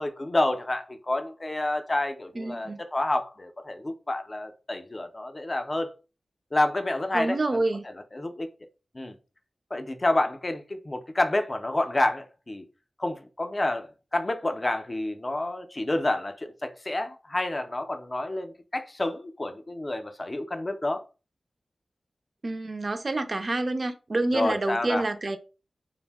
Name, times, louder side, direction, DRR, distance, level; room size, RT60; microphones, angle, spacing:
voice 1, 0.0-5.9 6.5-8.5 8.9-9.1 9.7-12.6 13.0-21.0 24.3-25.0, left 1 dB, 30° left, 0.4 m, -29 dB
voice 2, 2.4-2.8 7.1-7.8 22.4-25.4, right 2 dB, 45° right, 0.4 m, -28 dB
2.6 x 2.0 x 3.3 m
wide cardioid pair, 90°, 0 cm